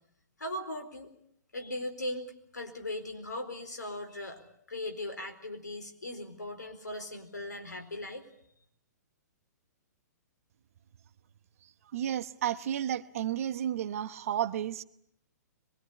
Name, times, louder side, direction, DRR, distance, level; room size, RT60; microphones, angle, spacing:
voice 1, 0.4-1.1 1.5-4.4 4.7-8.3, left 1 dB, 80° left, 4.4 m, -38 dB
voice 2, 11.9-14.8, right 10 dB, 50° right, 1.0 m, -32 dB
23.5 x 22.0 x 8.4 m
figure-of-eight pair, 115°, 9 cm